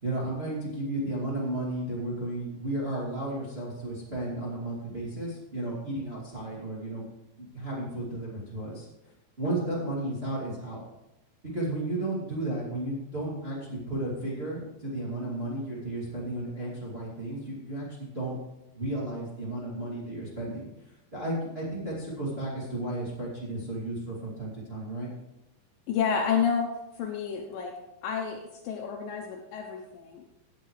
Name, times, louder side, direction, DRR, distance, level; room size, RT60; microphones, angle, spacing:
voice 1, 0.0-7.1 7.4-8.9 9.4-10.8 11.5-18.4 18.7-20.7 21.1-25.1, right 1 dB, 20° right, -6 dB, 2.1 m, -33 dB
voice 2, 25.9-26.7 27.0-27.7 28.0-28.4 28.6-30.3, left 7 dB, 75° left, 1 dB, 2.5 m, -29 dB
17.0 x 8.0 x 3.2 m, 0.96 s
omnidirectional pair, 4.2 m